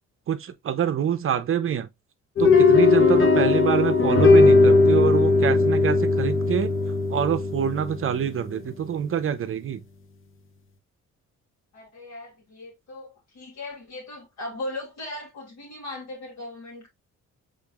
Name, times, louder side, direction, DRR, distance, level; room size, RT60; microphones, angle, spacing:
voice 1, 0.3-1.9 2.4-6.7 7.1-9.8, right 8 dB, 45° right, 0.6 m, -26 dB
sound 1, 2.4-8.6, left 3 dB, 45° left, 0.9 m, -18 dB
voice 2, 11.7-16.9, left 2 dB, 65° left, 2.6 m, -38 dB
5.2 x 3.8 x 2.3 m
cardioid pair, 90°, 30 cm